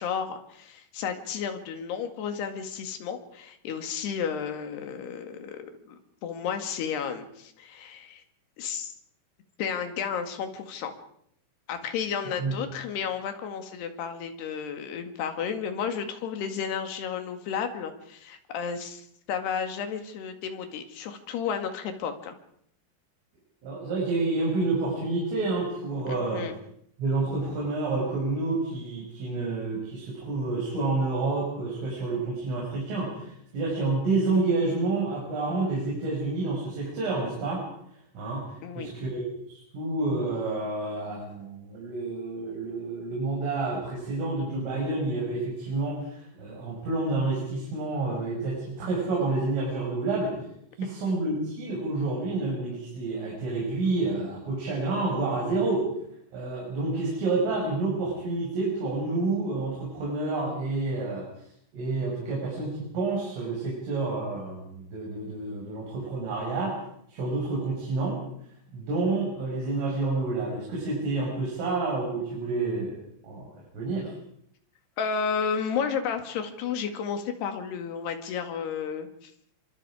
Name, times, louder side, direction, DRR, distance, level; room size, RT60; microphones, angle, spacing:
voice 1, 0.0-6.0 6.2-8.2 8.6-8.9 9.6-10.9 11.7-22.4 26.1-26.6 38.6-38.9 50.8-50.9 75.0-79.3, left 7 dB, 60° left, 6 dB, 3.9 m, -32 dB
voice 2, 23.6-26.5 27.0-37.6 38.1-39.3 39.5-50.3 50.8-55.9 56.3-61.3 61.7-66.8 67.1-68.2 68.7-73.0 73.2-74.1, right 3 dB, 80° right, -2 dB, 8.3 m, -29 dB
28.5 x 24.5 x 5.0 m, 0.70 s
omnidirectional pair, 5.7 m